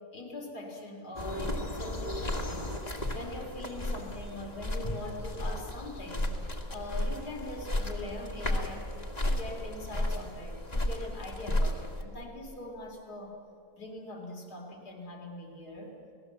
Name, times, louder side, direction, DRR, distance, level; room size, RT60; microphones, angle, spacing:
voice 1, 0.0-2.8 3.1-6.4 6.7-8.9 9.2-13.4 13.8-16.0, left 1 dB, 85° left, 2 dB, 3.5 m, -42 dB
sound 1, 1.2-12.0, left 1 dB, 25° left, 2.1 m, -34 dB
29.5 x 19.0 x 7.9 m, 2.5 s
omnidirectional pair, 1.7 m